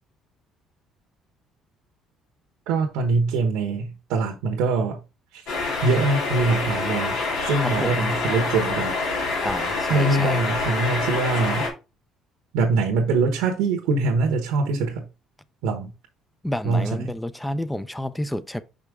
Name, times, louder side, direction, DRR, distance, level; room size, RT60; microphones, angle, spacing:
voice 1, 2.7-5.0 5.3-5.5 5.8-8.9 9.9-11.7 12.5-15.0 15.6-15.9 16.6-17.2, right 3 dB, 85° right, 1.1 m, -23 dB
sound 1, 5.5-11.7, left 3 dB, 80° left, 3.0 m, -26 dB
voice 2, 7.6-8.1 9.4-10.4 16.4-18.6, left 1 dB, 5° left, 0.6 m, -30 dB
5.7 x 5.1 x 3.6 m
cardioid pair, 90°, 0 cm